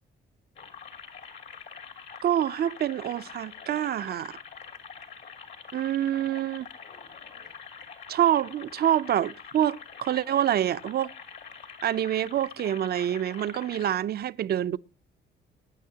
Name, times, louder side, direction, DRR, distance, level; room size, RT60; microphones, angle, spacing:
sound 1, 0.6-14.0, left 6 dB, 65° left, 2.7 m, -45 dB
voice 1, 2.2-4.4 5.7-6.7 8.1-11.1 11.8-14.8, right 11 dB, 55° right, 0.5 m, -26 dB
20.5 x 9.3 x 2.8 m
cardioid pair, 90°, 20 cm